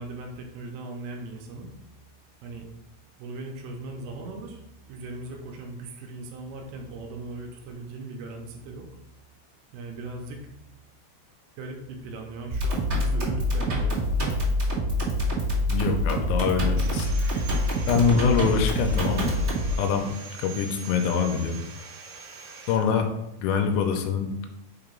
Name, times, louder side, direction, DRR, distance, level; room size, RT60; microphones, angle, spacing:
voice 1, 0.0-1.7 2.4-2.7 3.2-4.6 4.9-8.9 9.7-10.4 11.6-14.2, right 2 dB, 85° right, 2 dB, 3.2 m, -38 dB
sound 1, 12.5-19.7, equal, 40° right, 1.2 m, -25 dB
voice 2, 15.7-17.4 17.9-19.4 19.7-20.1 20.4-21.6 22.7-23.1 23.4-24.3, left 6 dB, 85° left, 5 dB, 3.3 m, -24 dB
Sawing, 16.8-22.8, right 5 dB, 70° right, 2.4 m, -43 dB
7.3 x 3.0 x 5.1 m, 0.88 s
omnidirectional pair, 5.9 m